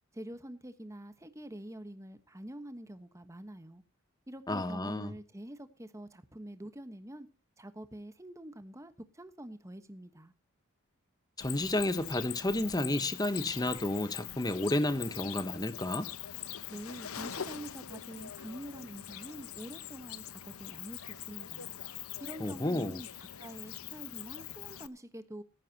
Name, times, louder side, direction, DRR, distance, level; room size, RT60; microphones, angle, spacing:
voice 1, 0.1-3.8 4.3-7.3 7.6-10.3 16.7-21.7 22.2-25.4, right 1 dB, 15° right, 1.2 m, -46 dB
voice 2, 4.5-5.1 11.4-16.1 22.4-23.0, left 1 dB, 20° left, 1.0 m, -31 dB
Cricket, 11.4-24.9, left 10 dB, 85° left, 0.8 m, -43 dB
17.5 x 14.5 x 2.9 m
head